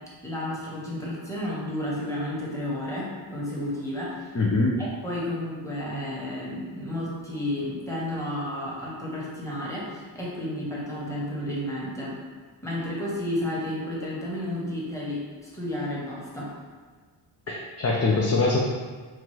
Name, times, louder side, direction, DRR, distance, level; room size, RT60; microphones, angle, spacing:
voice 1, 0.2-4.3 4.8-12.2 12.6-16.5, left 1 dB, 5° left, -6 dB, 1.2 m, -32 dB
voice 2, 4.3-4.8 17.5-18.6, left 3 dB, 30° left, -3 dB, 0.5 m, -23 dB
4.5 x 2.5 x 3.1 m, 1.4 s
cardioid pair, 85°, 50 cm